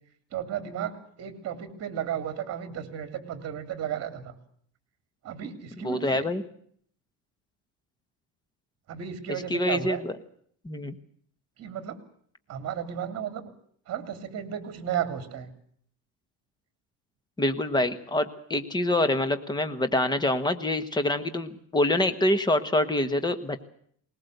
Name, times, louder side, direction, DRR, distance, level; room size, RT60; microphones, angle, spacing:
voice 1, 0.3-4.3 5.2-6.3 8.9-10.0 11.6-12.0 12.5-13.5 13.9-15.5, right 9 dB, 45° right, 10 dB, 3.2 m, -34 dB
voice 2, 5.8-6.4 9.5-10.1 10.6-10.9 17.4-23.7, left 1 dB, 10° left, 11 dB, 1.4 m, -26 dB
20.5 x 20.0 x 8.1 m, 0.63 s
cardioid pair, 150°, 35 cm